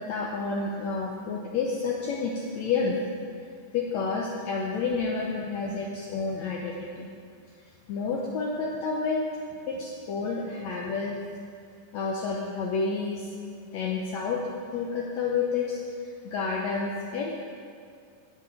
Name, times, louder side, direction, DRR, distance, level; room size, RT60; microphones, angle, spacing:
voice 1, 0.0-3.0 3.7-7.1 7.9-9.2 9.7-11.2 11.9-13.3 13.7-14.4 14.7-15.8 16.2-17.4, left 4 dB, 70° left, -1 dB, 1.8 m, -29 dB
9.1 x 7.3 x 8.7 m, 2.3 s
omnidirectional pair, 4.0 m